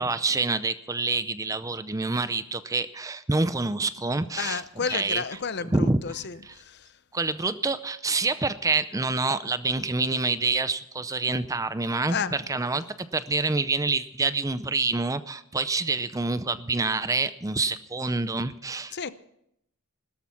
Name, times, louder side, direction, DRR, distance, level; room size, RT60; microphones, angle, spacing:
voice 1, 0.0-4.6 4.9-5.2 5.7-6.0 6.5-6.6 7.1-12.8 13.1-19.1, right 3 dB, 15° right, 0.5 m, -27 dB
voice 2, 4.4-6.9 12.1-12.4 18.9-19.1, left 6 dB, 50° left, 0.7 m, -32 dB
16.5 x 13.0 x 5.8 m
head